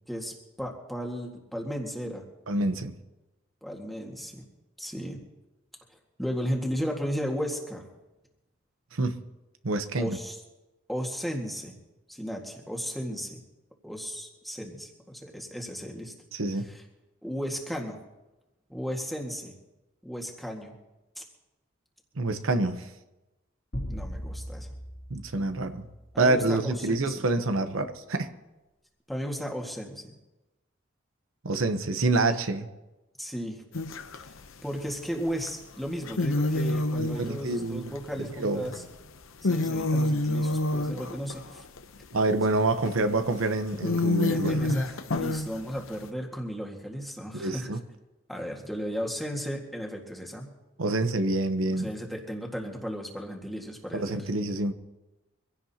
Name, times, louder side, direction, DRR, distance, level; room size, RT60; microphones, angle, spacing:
voice 1, 0.1-2.2 3.6-4.4 4.8-5.2 6.2-7.8 10.0-10.4 10.9-11.8 12.1-13.4 13.8-16.1 16.6-16.8 17.2-18.0 18.7-19.6 20.0-20.7 21.1-21.2 23.9-24.7 26.1-27.2 29.1-30.1 33.2-33.6 34.2-34.3 34.6-38.8 39.4-41.6 44.3-47.7 48.3-50.5 51.7-54.3, equal, ahead, 0 dB, 1.8 m, -35 dB
voice 2, 2.5-2.9 8.9-9.2 9.6-10.2 16.3-16.7 22.2-22.9 25.1-25.9 26.2-28.3 31.4-32.7 37.0-37.9 38.4-38.7 42.1-44.6 47.3-47.8 50.8-51.9 53.9-54.7, right 2 dB, 90° right, 8 dB, 1.0 m, -27 dB
sound 1, 23.7-26.3, equal, 55° left, 2.7 m, -38 dB
sound 2, 33.7-34.3 35.5-35.6 36.1-38.9 39.2-42.2 42.9-43.0 43.4-43.5 43.8-46.0, left 2 dB, 85° left, 0.8 m, -28 dB
24.5 x 16.5 x 2.9 m, 1.0 s
head